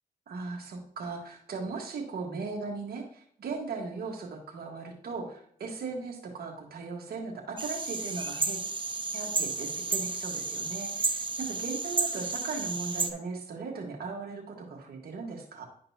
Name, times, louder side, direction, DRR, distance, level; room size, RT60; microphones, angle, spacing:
voice 1, 0.3-8.6 9.1-15.6, right 4 dB, 85° right, 0 dB, 1.5 m, -38 dB
sound 1, 7.6-13.1, right 3 dB, 30° right, 0.9 m, -32 dB
10.5 x 5.3 x 2.8 m, 0.63 s
cardioid pair, 55°, 16 cm